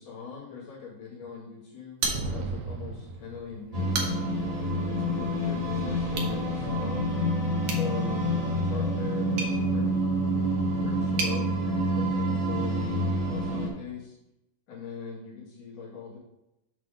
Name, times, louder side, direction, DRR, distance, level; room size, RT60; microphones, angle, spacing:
voice 1, 0.0-4.2 4.9-7.1 7.7-10.1 10.8-14.1 14.7-16.2, left 5 dB, 70° left, -7 dB, 3.3 m, -41 dB
sound 1, 2.0-2.8 3.1-3.2 3.7-4.5 6.1-6.4 7.6-11.4, right 4 dB, 65° right, 1.9 m, -35 dB
sound 2, 2.0-3.9, right 3 dB, 85° right, 2.3 m, -35 dB
sound 3, 3.7-13.7, equal, 30° right, 0.6 m, -27 dB
8.0 x 3.5 x 5.0 m, 0.90 s
omnidirectional pair, 3.9 m